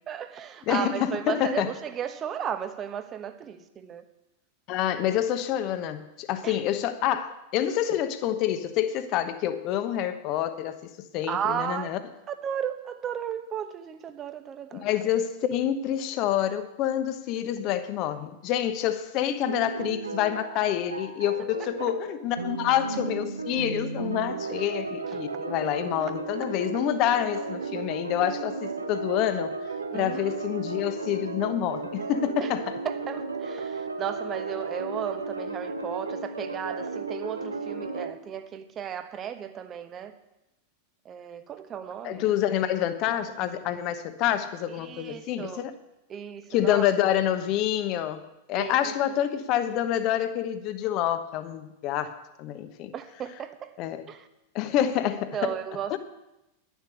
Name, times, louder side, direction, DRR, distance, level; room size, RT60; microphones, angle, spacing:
voice 1, 0.1-4.0 6.4-6.6 11.3-11.9 12.3-14.9 21.6-21.9 25.1-25.2 29.9-30.4 32.4-32.5 32.8-40.1 41.0-42.2 42.5-42.6 44.7-45.6 46.1-46.9 48.5-48.9 52.9-53.8 54.1-54.3 55.3-56.0, right 8 dB, 25° right, 9 dB, 1.1 m, -35 dB
voice 2, 0.7-1.7 4.7-12.0 14.7-29.5 29.9-32.7 42.0-45.7 46.5-48.2 48.5-52.1 52.4-52.9 53.8-54.1 54.5-55.5 55.9-56.0, left 11 dB, 40° left, 10 dB, 1.1 m, -27 dB
sound 1, 19.5-38.1, right 3 dB, 80° right, 1.2 m, -34 dB
11.5 x 7.3 x 8.7 m, 0.93 s
figure-of-eight pair, 90°, 0 cm